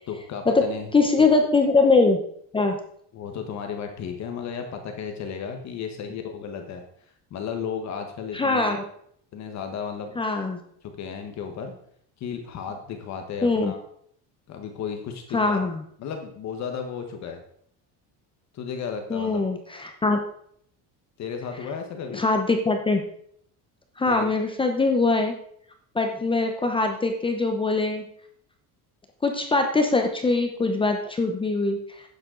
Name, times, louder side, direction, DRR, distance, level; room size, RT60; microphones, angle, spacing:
voice 1, 0.1-0.9 1.2-1.3 3.1-6.8 7.3-8.8 9.3-10.2 10.8-11.7 12.2-13.8 14.5-15.6 16.0-17.4 18.5-19.4 21.2-22.2 24.1-24.3, left 6 dB, 45° left, 5 dB, 1.4 m, -34 dB
voice 2, 0.9-2.2 2.5-2.8 8.3-8.8 10.2-10.6 13.4-13.7 15.3-15.8 19.1-20.2 22.1-23.0 24.0-25.3 25.9-28.0 29.2-31.8, left 3 dB, 15° left, 4 dB, 0.8 m, -22 dB
12.0 x 9.2 x 3.9 m, 0.65 s
cardioid pair, 170°, 40 cm